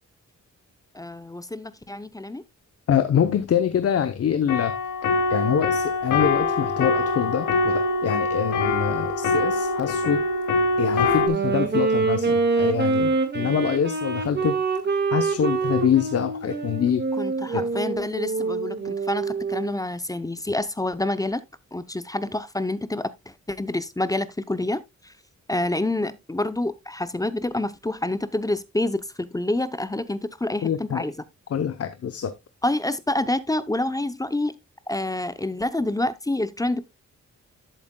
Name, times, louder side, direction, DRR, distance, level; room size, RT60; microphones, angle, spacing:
voice 1, 0.9-2.4 13.4-13.6 17.2-21.4 21.7-25.1 25.5-31.1 32.6-34.6 34.9-36.9, left 1 dB, 10° left, 0.6 m, -28 dB
voice 2, 2.9-4.8 5.3-10.2 10.8-14.6 15.1-17.0 17.5-17.6 30.6-31.0 31.5-32.3, left 8 dB, 50° left, 0.7 m, -25 dB
sound 1, 4.5-11.3, left 3 dB, 90° left, 1.6 m, -24 dB
Wind instrument woodwind instrument, 11.1-19.8, right 4 dB, 35° right, 1.8 m, -25 dB
11.0 x 8.2 x 2.2 m
wide cardioid pair, 145°, 30 cm